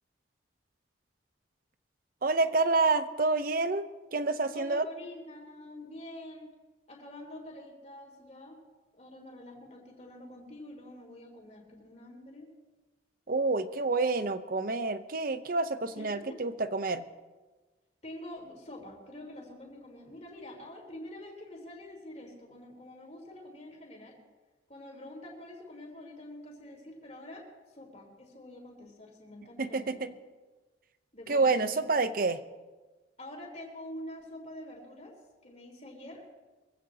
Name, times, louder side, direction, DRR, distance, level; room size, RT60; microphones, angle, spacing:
voice 1, 2.2-3.8 4.1-4.9 13.3-17.0 29.6-30.1 31.3-32.4, right 3 dB, 50° right, 11 dB, 0.8 m, -28 dB
voice 2, 4.5-6.5 6.9-8.6 8.9-12.5 16.0-16.4 18.0-24.2 24.7-27.5 27.7-30.1 31.1-31.8 33.2-35.1 35.4-36.2, left 1 dB, 40° left, -1 dB, 3.6 m, -46 dB
24.0 x 15.5 x 2.9 m, 1.3 s
head